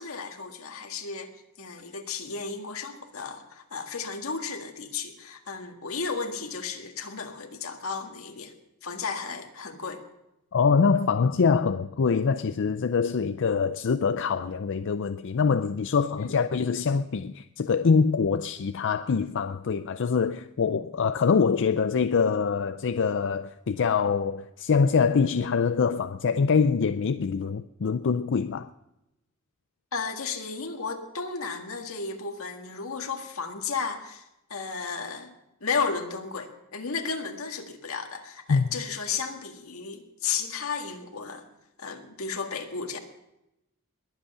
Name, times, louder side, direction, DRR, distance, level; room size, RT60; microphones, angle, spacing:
voice 1, 0.0-1.3 1.6-8.5 8.8-10.0 16.1-16.4 29.9-34.2 34.5-35.3 35.6-41.5 41.8-43.0, left 5 dB, 80° left, 1.8 m, -33 dB
voice 2, 10.5-28.7 38.5-38.7, left 5 dB, 60° left, 0.5 m, -24 dB
21.5 x 8.1 x 6.8 m
head